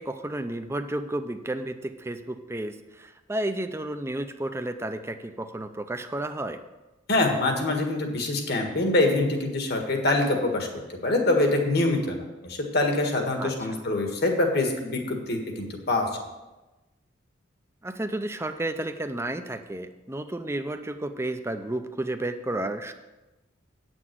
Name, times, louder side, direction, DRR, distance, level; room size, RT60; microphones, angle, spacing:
voice 1, 0.0-6.6 13.4-13.8 17.8-22.9, right 1 dB, 15° right, 8 dB, 0.6 m, -32 dB
voice 2, 7.1-10.7 11.0-16.1, left 2 dB, 55° left, 2 dB, 1.7 m, -25 dB
8.9 x 6.2 x 7.6 m, 1.1 s
head